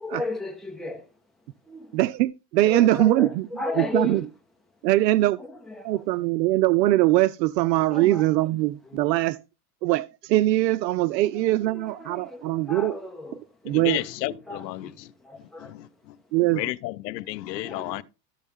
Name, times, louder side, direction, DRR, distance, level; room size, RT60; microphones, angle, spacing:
voice 1, 0.0-1.0 1.7-1.8 2.7-3.3 3.6-4.1 5.8-5.9 7.9-8.2 8.9-9.0 11.2-11.3 11.7-13.3 13.7-13.8 14.5-14.6 17.6-18.0, left 2 dB, ahead, 1.3 m, -33 dB
voice 2, 1.9-3.5 3.8-4.2 4.8-5.4 5.8-9.4 9.8-13.0 13.6-14.0 16.3-16.6, right 16 dB, 85° right, 0.6 m, -22 dB
voice 3, 13.7-15.1 15.7-15.8 16.1-16.2 16.4-18.0, left 17 dB, 75° left, 0.8 m, -32 dB
14.0 x 5.3 x 3.6 m
supercardioid pair, 135°, 50 cm